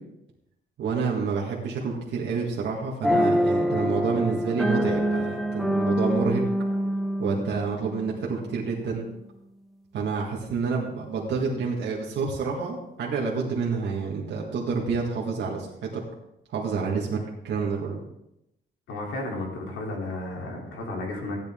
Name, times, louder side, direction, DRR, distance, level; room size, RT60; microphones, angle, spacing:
voice 1, 0.8-6.4 7.2-9.1 9.9-15.7 15.9-16.0 16.5-17.2 17.4-18.0, right 5 dB, 65° right, -3 dB, 1.9 m, -28 dB
sound 1, 3.0-8.5, equal, ahead, 0.8 m, -25 dB
voice 2, 18.9-21.5, left 2 dB, 85° left, -1 dB, 3.5 m, -33 dB
15.0 x 10.5 x 3.7 m, 0.85 s
cardioid pair, 175°, 20 cm